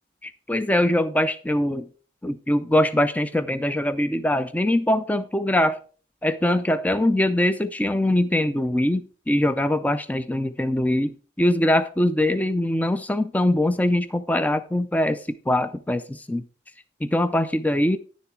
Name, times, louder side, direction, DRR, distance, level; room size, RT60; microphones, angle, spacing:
voice 1, 0.2-1.9 2.2-5.8 6.2-11.1 11.4-16.4 17.0-18.0, left 1 dB, 10° left, 12 dB, 0.4 m, -22 dB
10.5 x 7.0 x 4.6 m, 0.40 s
head